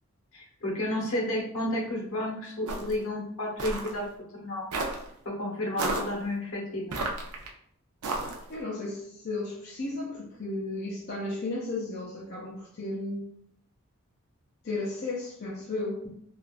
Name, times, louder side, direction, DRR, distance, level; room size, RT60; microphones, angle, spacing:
voice 1, 0.3-4.0 4.4-4.6 5.2-7.0, left 1 dB, 65° left, -2 dB, 0.9 m, -31 dB
sound 1, 2.7-3.0 3.6-3.9 4.7-5.1 5.8-6.1 6.9-7.5 8.0-8.5, right 2 dB, 80° right, 0.5 m, -31 dB
voice 2, 8.5-13.2 14.6-16.0, left 2 dB, 45° left, -5 dB, 0.5 m, -34 dB
3.2 x 2.4 x 2.4 m, 0.70 s
head